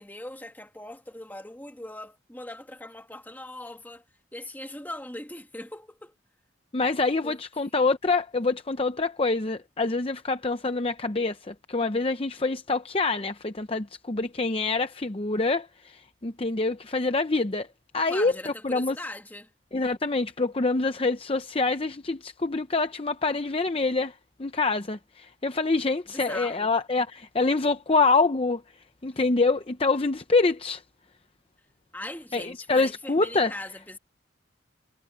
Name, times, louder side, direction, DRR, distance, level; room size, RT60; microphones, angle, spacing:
voice 1, 0.0-4.0 4.3-6.2 7.2-7.7 18.1-19.5 26.1-26.7 31.9-34.0, left 1 dB, 10° left, 2.2 m, -40 dB
voice 2, 6.7-17.7 17.9-19.0 19.7-24.1 24.4-28.6 29.0-30.8 32.3-33.5, left 3 dB, 30° left, 0.7 m, -26 dB
head